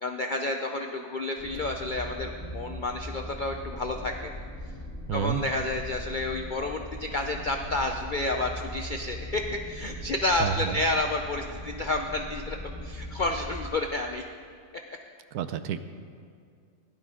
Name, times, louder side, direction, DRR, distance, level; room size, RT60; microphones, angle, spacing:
voice 1, 0.0-4.3 5.1-12.6 12.8-14.2, left 2 dB, 60° left, 3 dB, 0.5 m, -30 dB
sound 1, 1.4-13.7, equal, 15° left, 1.7 m, -39 dB
voice 2, 5.1-5.4 10.4-10.8 15.3-15.8, right 9 dB, 80° right, 11 dB, 1.1 m, -29 dB
16.5 x 11.5 x 3.7 m, 2.3 s
omnidirectional pair, 1.6 m